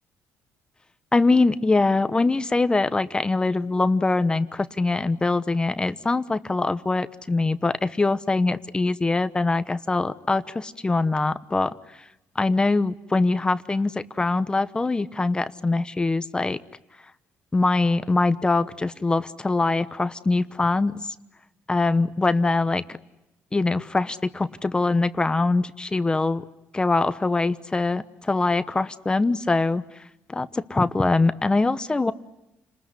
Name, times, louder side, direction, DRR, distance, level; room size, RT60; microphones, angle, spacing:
voice 1, 1.1-11.8 12.3-16.6 17.5-20.9 21.7-22.8 23.5-26.4 26.7-29.8 30.3-32.1, left 3 dB, 15° left, 12 dB, 1.0 m, -23 dB
29.5 x 20.5 x 9.9 m, 0.95 s
cardioid pair, 105°, 5 cm